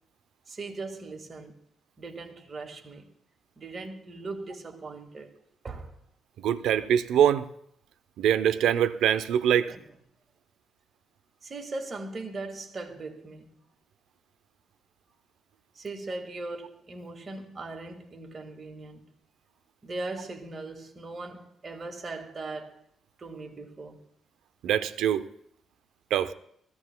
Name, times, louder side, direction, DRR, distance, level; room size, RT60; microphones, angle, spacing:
voice 1, 0.5-1.6 2.0-3.1 3.6-5.3 5.6-6.0 9.7-9.8 11.4-13.6 15.7-19.1 19.8-22.8 23.2-24.0, right 3 dB, 35° right, 1.7 m, -39 dB
voice 2, 6.4-7.5 8.2-9.7 24.6-25.2 26.1-26.3, right 9 dB, 85° right, 0.6 m, -23 dB
20.5 x 15.0 x 2.2 m
cardioid pair, 90°, 0 cm